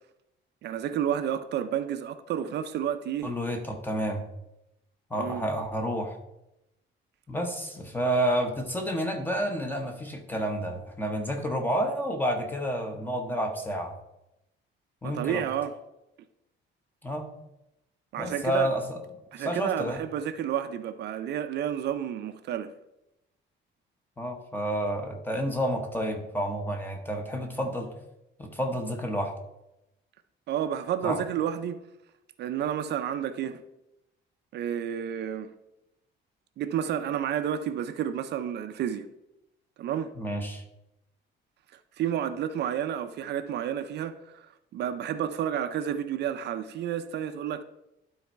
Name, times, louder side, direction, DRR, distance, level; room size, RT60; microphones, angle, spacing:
voice 1, 0.6-3.3 5.1-5.5 15.0-15.8 18.1-18.7 19.3-22.7 30.5-31.8 32.4-33.6 34.5-35.5 36.6-39.1 39.8-40.1 42.0-47.6, right 9 dB, 55° right, 0.5 m, -30 dB
voice 2, 3.2-4.2 5.1-6.2 7.3-13.9 15.0-15.4 17.0-17.3 18.2-19.0 19.3-20.0 24.2-27.9 28.4-29.3 31.0-31.2 40.2-40.6, equal, 10° left, 0.9 m, -30 dB
12.0 x 4.1 x 4.6 m
cardioid pair, 180°, 20 cm